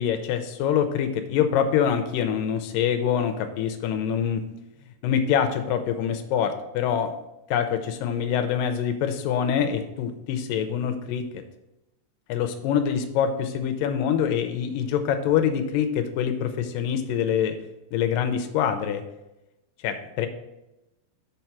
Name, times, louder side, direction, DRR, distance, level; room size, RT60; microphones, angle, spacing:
voice 1, 0.0-4.4 5.0-7.1 7.5-11.4 12.3-17.6 17.9-19.0 19.8-20.3, left 8 dB, 80° left, 8 dB, 2.2 m, -25 dB
6.5 x 4.5 x 5.8 m, 0.93 s
omnidirectional pair, 4.1 m